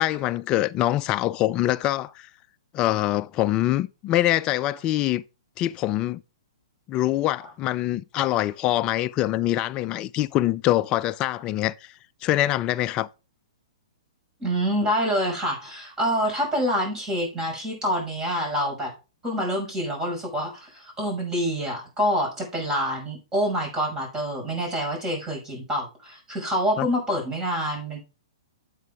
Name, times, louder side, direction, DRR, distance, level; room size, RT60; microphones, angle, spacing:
voice 1, 0.0-2.3 2.7-5.2 5.6-6.2 6.9-11.9 12.2-13.1 26.8-26.9, left 14 dB, 30° left, 0.5 m, -24 dB
voice 2, 14.4-18.9 19.2-28.0, equal, 20° right, 5.8 m, -26 dB
9.3 x 8.4 x 3.5 m
hypercardioid pair, 120°, 3 cm